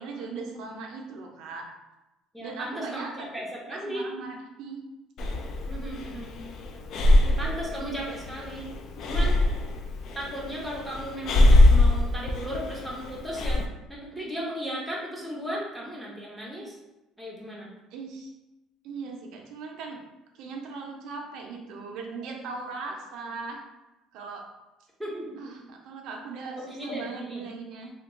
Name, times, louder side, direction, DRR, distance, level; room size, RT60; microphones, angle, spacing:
voice 1, 0.0-1.7 2.4-3.1 3.7-4.8 17.9-18.3 18.8-20.0 20.3-23.6 24.1-24.5 25.4-27.9, right 4 dB, 65° right, 1 dB, 0.5 m, -38 dB
voice 2, 2.3-4.1 5.7-6.3 7.2-8.7 9.0-9.4 10.1-13.6 13.9-16.8 17.2-17.7 25.0-25.5 26.5-27.4, equal, ahead, -5 dB, 0.6 m, -36 dB
Breathing, 5.2-13.7, left 1 dB, 45° left, 0.3 m, -23 dB
2.9 x 2.2 x 3.6 m, 0.97 s
cardioid pair, 165°, 0 cm